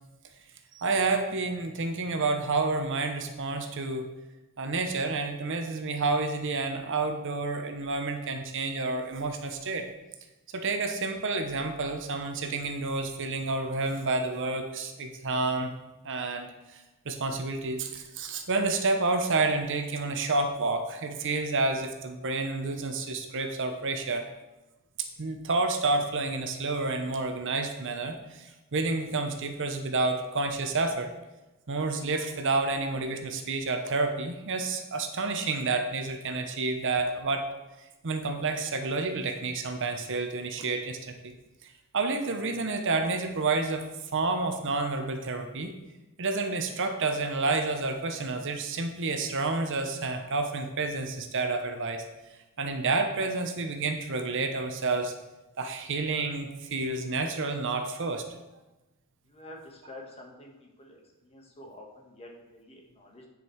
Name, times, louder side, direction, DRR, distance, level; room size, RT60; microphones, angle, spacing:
voice 1, 0.7-4.1 4.6-9.8 10.5-15.7 16.0-16.5 16.7-24.2 25.2-31.1 31.7-37.5 38.0-41.3 41.9-43.8 44.1-45.7 46.2-52.0 52.6-55.1 55.6-58.2, right 3 dB, 60° right, 6 dB, 0.9 m, -29 dB
voice 2, 59.3-63.3, left 1 dB, 30° left, 0 dB, 1.5 m, -48 dB
9.8 x 5.4 x 4.6 m, 1.0 s
head